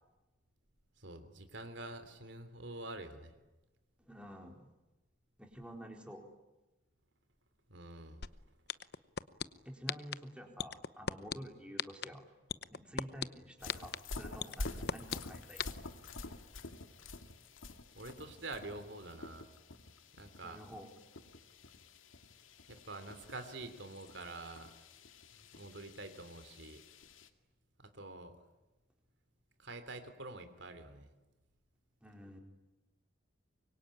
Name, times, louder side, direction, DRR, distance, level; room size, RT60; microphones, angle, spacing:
voice 1, 1.0-3.3 7.7-8.2 17.9-19.5 20.1-20.6 22.7-24.8 25.5-26.9 27.8-28.4 29.6-31.1, right 2 dB, 65° right, 9 dB, 3.2 m, -47 dB
voice 2, 4.0-4.7 5.4-6.3 9.6-12.3 12.7-15.8 20.4-20.9 32.0-32.4, equal, 5° right, 2 dB, 4.2 m, -49 dB
sound 1, 8.2-8.3 8.7-9.4 9.9-10.1 10.6-11.3 11.8-12.1 12.5-13.2 13.7-14.0 14.4-15.2 15.6-15.7, left 7 dB, 55° left, 0.9 m, -34 dB
horse galloping, 13.6-27.3, left 2 dB, 85° left, 2.2 m, -48 dB
25.0 x 23.5 x 10.0 m, 1.1 s
head